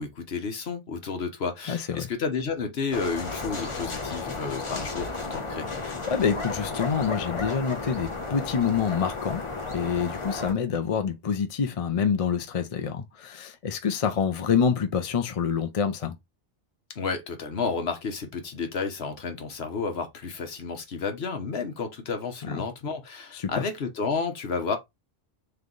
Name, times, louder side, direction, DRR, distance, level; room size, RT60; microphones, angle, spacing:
voice 1, 0.0-5.7 16.9-24.8, left 5 dB, 60° left, 1.2 m, -31 dB
voice 2, 1.7-2.1 6.1-9.4 9.7-16.2 23.3-23.5, left 6 dB, 45° left, 0.5 m, -26 dB
sound 1, 2.9-10.5, left 3 dB, 30° left, 0.9 m, -33 dB
3.4 x 3.2 x 3.8 m
omnidirectional pair, 1.2 m